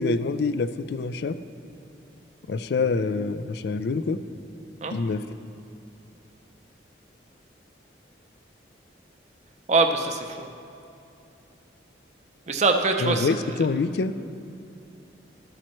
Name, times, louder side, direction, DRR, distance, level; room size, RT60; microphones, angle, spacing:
voice 1, 0.0-1.3 2.5-4.2 4.9-5.2 13.0-14.1, left 4 dB, 60° left, 13 dB, 0.3 m, -26 dB
voice 2, 9.7-10.5 12.5-13.3 13.6-13.7, right 3 dB, 35° right, 5 dB, 0.5 m, -23 dB
13.5 x 8.6 x 3.1 m, 2.7 s
head